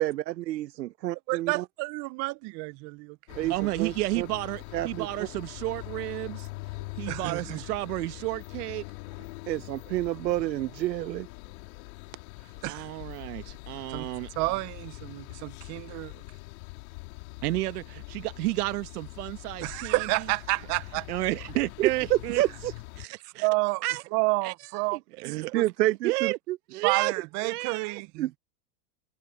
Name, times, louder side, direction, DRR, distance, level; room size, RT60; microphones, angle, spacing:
voice 1, 0.0-1.6 3.3-4.3 4.7-5.1 9.5-11.3 21.8-22.7 25.5-26.3 28.2-28.4, right 15 dB, 85° right, 0.8 m, -28 dB
voice 2, 1.3-3.2 3.4-3.5 7.1-7.6 12.6-12.9 13.9-14.1 14.4-16.1 19.6-21.1 23.4-23.8 24.1-25.0 25.5-25.6 26.8-28.3, right 26 dB, 35° right, 0.7 m, -30 dB
sound 1, 3.3-23.1, left 26 dB, 55° left, 4.0 m, -43 dB
voice 3, 3.5-6.5 7.0-8.8 12.6-14.3 17.4-20.3 21.1-22.4 23.0-23.5 23.8-24.0 24.4-24.5 24.9-25.6 26.0-27.1 27.4-28.0, right 19 dB, 65° right, 1.6 m, -31 dB
hypercardioid pair, 125°, 50 cm